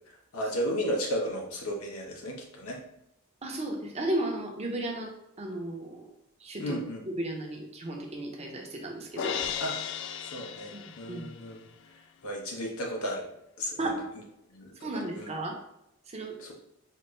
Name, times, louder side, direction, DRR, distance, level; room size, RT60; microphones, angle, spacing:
voice 1, 0.1-2.8 6.6-7.0 9.6-9.8 10.3-11.7 12.2-13.2 13.6-13.9 14.5-15.3 16.4-16.5, equal, 90° left, 0 dB, 0.9 m, -34 dB
voice 2, 3.4-5.1 5.4-6.1 6.4-6.8 7.1-9.6 10.7-10.8 11.1-11.3 13.8-13.9 14.8-15.5 16.1-16.3, right 1 dB, 30° right, 1 dB, 0.6 m, -34 dB
Crash cymbal, 9.2-11.4, left 8 dB, 60° left, 0.3 m, -35 dB
4.1 x 2.5 x 3.1 m, 0.82 s
head